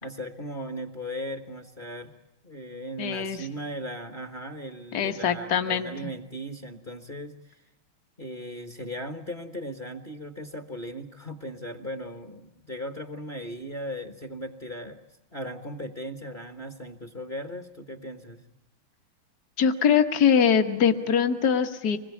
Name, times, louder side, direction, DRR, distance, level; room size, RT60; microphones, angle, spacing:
voice 1, 0.0-2.1 2.4-7.6 8.2-15.0 15.3-18.4, equal, 30° left, 7 dB, 1.2 m, -37 dB
voice 2, 3.0-3.4 4.9-5.9 19.6-22.0, left 7 dB, 50° left, 6 dB, 1.7 m, -22 dB
26.0 x 21.0 x 8.4 m, 0.94 s
omnidirectional pair, 2.3 m